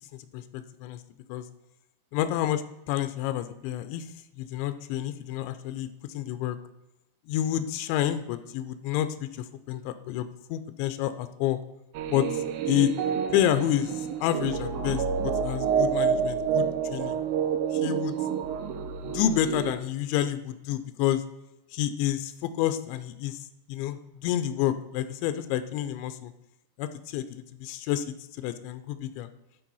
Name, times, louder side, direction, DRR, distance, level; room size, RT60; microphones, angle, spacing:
voice 1, 0.1-1.0 1.3-1.5 2.1-4.1 4.4-6.6 7.3-11.6 12.1-12.9 13.3-17.2 17.7-18.2 19.0-21.2 21.7-26.3 26.8-29.3, left 11 dB, 85° left, 11 dB, 2.8 m, -29 dB
sound 1, 11.9-19.7, right 7 dB, 85° right, 2.0 m, -28 dB
12.0 x 4.5 x 5.5 m, 0.93 s
omnidirectional pair, 5.2 m